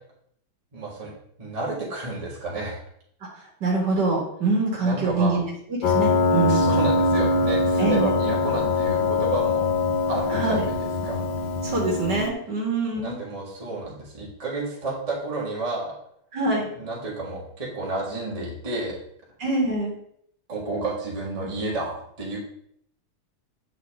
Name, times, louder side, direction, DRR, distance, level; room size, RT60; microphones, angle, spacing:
voice 1, 0.7-1.1 1.4-2.8 4.8-5.4 6.5-9.6 10.1-10.7 11.0-11.2 12.9-15.9 16.8-19.0 20.5-22.4, right 3 dB, 20° right, -4 dB, 1.8 m, -31 dB
voice 2, 3.6-5.4 5.7-6.7 7.8-8.1 10.3-10.7 11.6-13.1 16.3-16.7 19.4-19.9, right 3 dB, 50° right, -2 dB, 2.6 m, -24 dB
Piano, 5.8-12.3, left 3 dB, 65° left, 1.4 m, -23 dB
9.3 x 5.9 x 3.6 m, 0.68 s
omnidirectional pair, 2.4 m